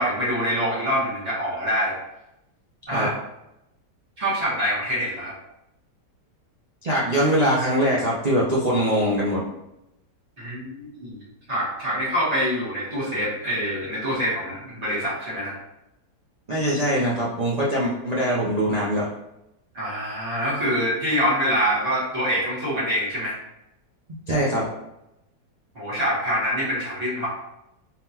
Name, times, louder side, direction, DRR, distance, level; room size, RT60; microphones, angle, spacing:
voice 1, 0.0-2.0 2.9-3.1 4.2-5.4 10.4-15.6 19.7-23.4 25.7-27.3, equal, 40° right, -8 dB, 1.9 m, -25 dB
voice 2, 6.8-9.4 16.5-19.1 24.3-24.6, equal, 60° right, -5 dB, 0.4 m, -22 dB
4.0 x 3.7 x 2.8 m, 0.86 s
omnidirectional pair, 1.8 m